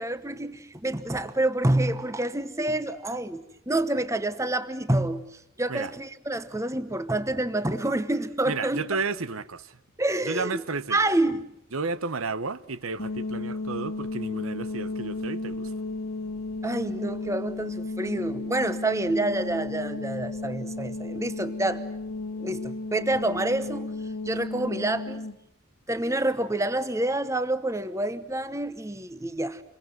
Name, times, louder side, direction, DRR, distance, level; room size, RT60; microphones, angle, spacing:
voice 1, 0.0-8.8 10.0-10.6 10.9-11.5 16.6-21.8 22.4-24.0 24.2-25.3 25.9-29.6, right 1 dB, 15° right, 1.0 m, -28 dB
voice 2, 8.5-9.8 10.2-11.0 11.7-15.7, right 4 dB, 75° right, 1.0 m, -32 dB
sound 1, 13.0-25.4, left 2 dB, 85° left, 1.9 m, -34 dB
28.5 x 23.0 x 7.8 m
head